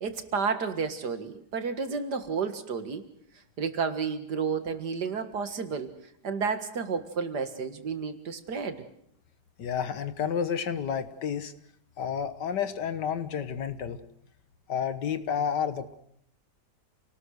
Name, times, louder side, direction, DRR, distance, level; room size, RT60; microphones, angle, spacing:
voice 1, 0.0-3.0 3.6-5.9 6.2-8.8, right 5 dB, 70° right, 8 dB, 2.3 m, -31 dB
voice 2, 9.6-11.5 12.0-14.0 14.7-15.9, left 7 dB, 80° left, 11 dB, 1.9 m, -30 dB
28.5 x 18.5 x 6.6 m, 0.72 s
omnidirectional pair, 1.8 m